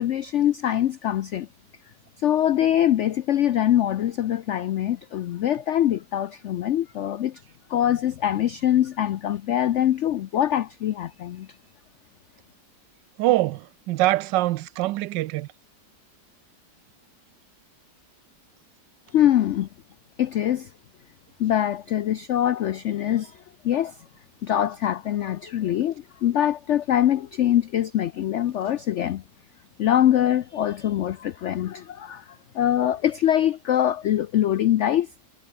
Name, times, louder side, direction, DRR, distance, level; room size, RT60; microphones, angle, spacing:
voice 1, 0.0-1.5 2.2-7.4 7.7-11.5 19.1-19.7 20.2-20.7 21.4-23.4 23.6-24.0 24.4-29.2 29.8-32.2 32.5-35.1, left 11 dB, 85° left, 0.6 m, -23 dB
voice 2, 13.2-15.5, right 17 dB, 85° right, 1.2 m, -24 dB
omnidirectional pair, 1.9 m